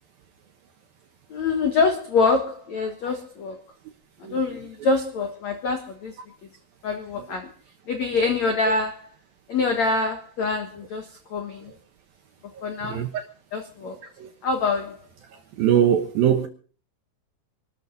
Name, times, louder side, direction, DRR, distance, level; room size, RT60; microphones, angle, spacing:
voice 1, 1.3-3.6 4.2-6.2 6.8-7.5 7.9-9.1 9.5-11.7 12.6-13.0 13.5-14.0 14.4-15.0, left 4 dB, 70° left, 1.6 m, -25 dB
voice 2, 12.6-13.1 14.2-14.3 15.3-16.5, right 9 dB, 70° right, 2.3 m, -22 dB
25.0 x 13.0 x 4.0 m
omnidirectional pair, 5.6 m